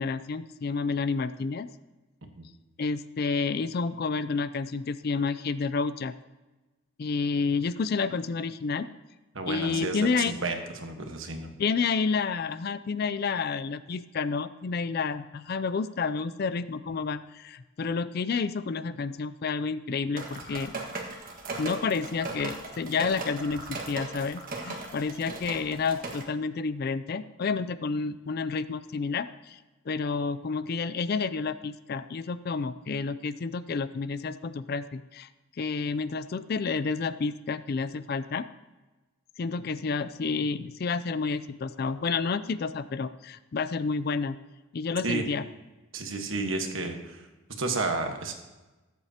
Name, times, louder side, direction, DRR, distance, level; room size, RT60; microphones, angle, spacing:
voice 1, 0.0-1.7 2.8-6.1 7.0-8.9 9.5-10.4 11.6-20.7 21.6-29.6 29.9-35.3 35.6-38.4 39.4-44.4 44.7-45.4, left 4 dB, 45° left, 14 dB, 0.4 m, -30 dB
voice 2, 9.3-11.5 45.0-45.2 45.9-47.3 47.6-48.3, right 3 dB, 65° right, 4 dB, 1.3 m, -31 dB
sound 1, 20.2-26.2, right 2 dB, 40° right, 1.5 m, -38 dB
21.5 x 8.0 x 2.9 m, 1.1 s
head